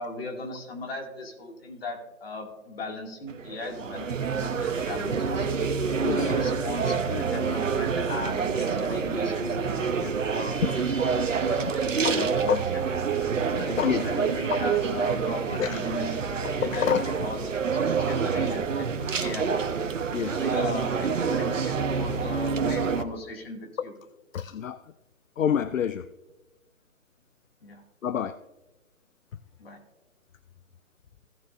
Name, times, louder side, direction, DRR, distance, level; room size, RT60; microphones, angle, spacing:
voice 1, 0.0-5.5 6.1-12.9 13.5-19.5 20.4-23.9 27.6-27.8 29.6-29.8, left 2 dB, 45° left, 2 dB, 2.5 m, -37 dB
sound 1, 3.3-23.0, right 5 dB, 65° right, 1.1 m, -27 dB
voice 2, 6.0-6.3 10.0-10.1 12.0-12.6 13.8-14.0 14.5-14.6 15.6-15.8 16.4-17.1 20.1-20.5 23.8-23.9 24.3-24.8 25.4-26.1 28.0-28.4, left 8 dB, 70° left, 13 dB, 0.6 m, -27 dB
16.5 x 6.8 x 2.6 m, 1.1 s
hypercardioid pair, 160°, 42 cm